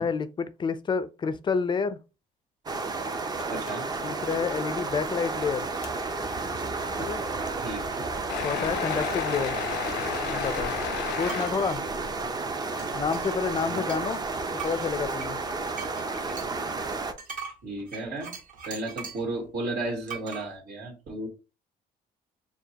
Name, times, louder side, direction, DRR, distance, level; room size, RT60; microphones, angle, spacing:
voice 1, 0.0-2.0 4.0-5.7 7.0-7.2 8.4-9.6 10.3-10.7 11.2-11.8 12.9-14.2 14.6-15.4, left 5 dB, 30° left, 0.4 m, -29 dB
sound 1, 2.7-17.1, right 3 dB, 25° right, 0.6 m, -32 dB
sound 2, 3.4-3.8 4.2-4.4 5.0-5.1 5.8-5.9 8.3-11.5, left 13 dB, 90° left, 0.4 m, -33 dB
voice 2, 3.5-3.9 7.6-8.0 13.6-13.8 17.6-18.3 18.7-21.3, right 2 dB, 75° right, 1.8 m, -34 dB
sound 3, 11.3-11.8 12.8-14.2 14.6-19.3 20.1-20.4, right 5 dB, 50° right, 1.4 m, -41 dB
6.7 x 2.3 x 2.8 m
cardioid pair, 110°, 17 cm